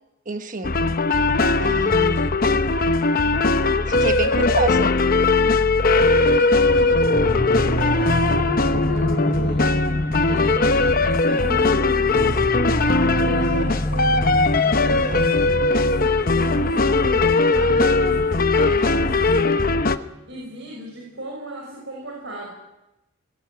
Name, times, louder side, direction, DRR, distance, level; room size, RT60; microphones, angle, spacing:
voice 1, 0.3-0.7 1.6-2.5 3.8-4.9, right 3 dB, 35° right, 1.2 m, -28 dB
sound 1, 0.6-20.0, left 3 dB, 40° left, 0.9 m, -19 dB
voice 2, 4.0-4.7 5.9-9.8 10.2-12.6 13.2-19.8 20.3-22.5, right 1 dB, 55° right, 5.9 m, -35 dB
sound 2, 7.0-19.8, equal, 5° left, 1.2 m, -30 dB
20.5 x 17.5 x 9.3 m
head